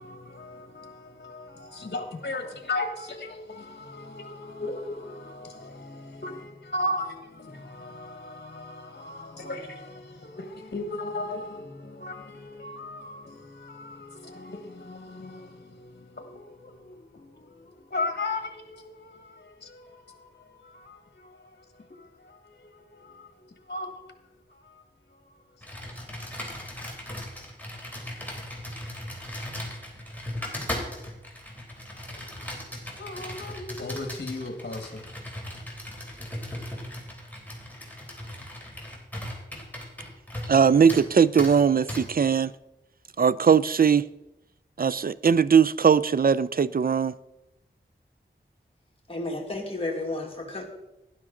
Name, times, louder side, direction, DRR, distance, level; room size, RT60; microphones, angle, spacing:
voice 1, 0.0-24.8 25.1-25.7 32.1-32.3 33.0-35.1, left 2 dB, 60° left, 1.4 m, -37 dB
Computer keyboard, 25.6-40.6 40.9-41.1 41.4-41.5 41.9-42.0, left 1 dB, 10° left, 3.3 m, -37 dB
voice 2, 40.5-42.5 43.2-44.1 44.8-47.2, right 6 dB, 50° right, 0.4 m, -20 dB
voice 3, 49.1-50.6, left 2 dB, 30° left, 2.0 m, -32 dB
12.0 x 10.5 x 3.8 m
wide cardioid pair, 45°, 20 cm